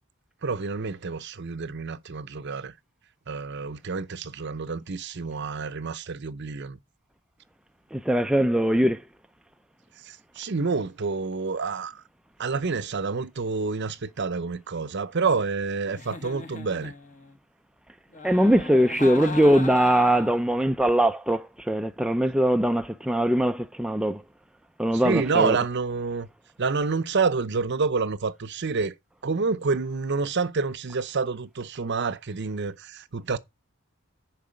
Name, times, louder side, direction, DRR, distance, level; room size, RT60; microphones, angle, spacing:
voice 1, 0.4-2.7 3.3-6.8 10.0-12.0 12.4-16.9 24.9-26.3 26.6-28.9 29.2-33.4, right 4 dB, 55° right, 0.7 m, -28 dB
voice 2, 7.9-9.0 18.2-24.2 24.8-25.6, right 1 dB, 5° right, 0.4 m, -21 dB
Giggle, 15.9-17.4 18.1-20.4, left 4 dB, 40° left, 1.2 m, -38 dB
7.0 x 4.8 x 6.3 m
head